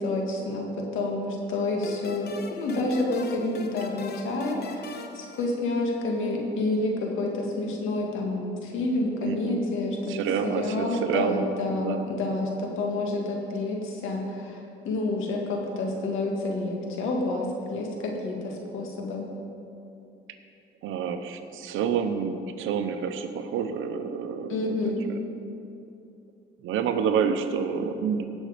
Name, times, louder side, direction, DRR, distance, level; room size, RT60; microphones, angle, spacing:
voice 1, 0.0-10.2 10.4-14.6 14.8-19.3 24.5-25.0, left 2 dB, 85° left, 0 dB, 2.1 m, -29 dB
sound 1, 1.8-6.2, left 5 dB, 55° left, 0.9 m, -43 dB
voice 2, 9.2-9.6 10.1-12.4 20.8-25.2 26.6-28.3, right 7 dB, 85° right, 8 dB, 0.9 m, -28 dB
17.5 x 6.4 x 5.1 m, 2.7 s
cardioid pair, 90°, 20 cm